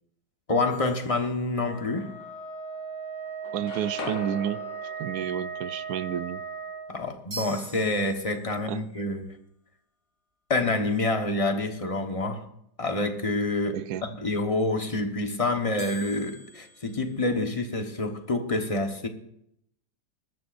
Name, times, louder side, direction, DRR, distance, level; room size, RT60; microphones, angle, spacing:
voice 1, 0.5-2.1 6.9-9.3 10.5-12.4 12.8-19.1, left 2 dB, 25° left, 1.0 m, -27 dB
sound 1, 0.7-2.0 7.3-8.8 15.8-17.9, right 3 dB, 85° right, 5.0 m, -46 dB
sound 2, 0.9-1.4 2.0-3.0 3.3-7.2, left 6 dB, 80° left, 1.7 m, -44 dB
Wind instrument woodwind instrument, 1.6-6.9, right 6 dB, 45° right, 2.7 m, -37 dB
voice 2, 3.5-4.6 5.0-6.4 8.7-8.8 13.7-14.0, right 10 dB, 70° right, 1.0 m, -30 dB
21.5 x 12.5 x 2.6 m
omnidirectional pair, 1.9 m